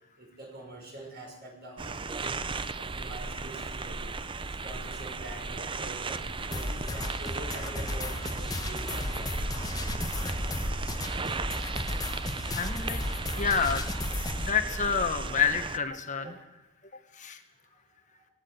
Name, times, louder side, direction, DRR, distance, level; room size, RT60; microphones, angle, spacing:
voice 1, 0.2-2.4 2.7-4.2 4.6-9.7 16.2-16.3 17.7-17.8, right 2 dB, 45° right, 1 dB, 6.4 m, -45 dB
sound 1, 1.8-15.8, right 3 dB, 25° right, 0.6 m, -36 dB
sound 2, 6.5-14.5, left 2 dB, 15° left, 1.1 m, -34 dB
voice 2, 12.5-13.0 13.4-13.9 14.4-16.3 17.2-17.4, left 6 dB, 35° left, 7 dB, 1.3 m, -28 dB
19.5 x 17.0 x 8.0 m, 1.0 s
head